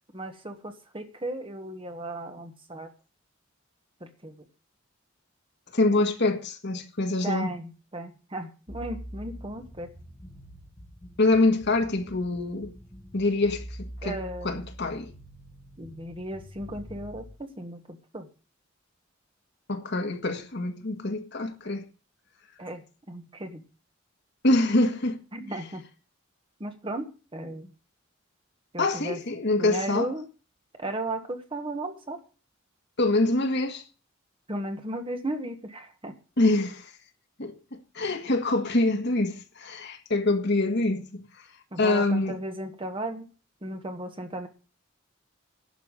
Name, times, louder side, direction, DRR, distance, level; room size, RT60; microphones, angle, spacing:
voice 1, 0.1-2.9 4.0-4.3 7.2-9.9 14.0-14.6 15.8-18.3 22.6-22.8 23.1-23.6 25.3-25.8 26.6-27.7 28.7-29.2 29.6-30.2 30.8-32.2 34.5-36.1 41.7-43.3 43.6-44.5, right 1 dB, 25° right, 1.5 m, -35 dB
voice 2, 5.7-7.6 11.2-12.7 13.1-15.1 19.7-21.8 24.4-25.2 28.8-30.1 33.0-33.8 36.4-36.9 37.4-41.3 41.8-42.4, left 2 dB, 55° left, 1.7 m, -25 dB
sound 1, 8.7-17.3, equal, 15° left, 2.3 m, -45 dB
11.5 x 5.8 x 9.0 m
head